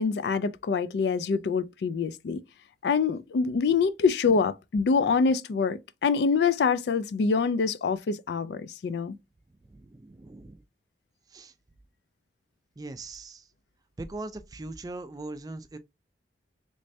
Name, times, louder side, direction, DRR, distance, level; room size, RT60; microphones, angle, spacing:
voice 1, 0.0-2.4 2.8-9.2, left 5 dB, 70° left, 0.3 m, -25 dB
voice 2, 9.7-10.6 11.3-11.5 12.8-13.5 14.0-15.8, right 2 dB, 20° right, 0.3 m, -40 dB
3.2 x 3.1 x 2.6 m
head